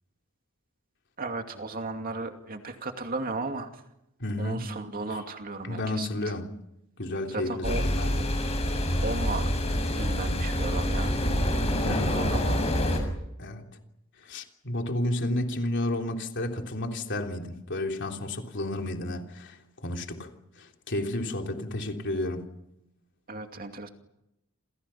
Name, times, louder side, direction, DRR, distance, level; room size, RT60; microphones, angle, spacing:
voice 1, 1.2-3.8 4.4-6.4 7.3-7.8 9.0-9.5 10.0-11.2 11.9-12.6 23.3-23.9, right 3 dB, 45° right, 2.5 m, -35 dB
voice 2, 4.2-4.7 5.6-6.5 7.0-8.2 11.8-12.4 13.4-13.7 14.2-20.3 20.6-22.4, left 1 dB, 55° left, 3.4 m, -32 dB
sound 1, 7.6-13.0, equal, 30° left, 6.9 m, -26 dB
29.0 x 28.0 x 5.9 m
head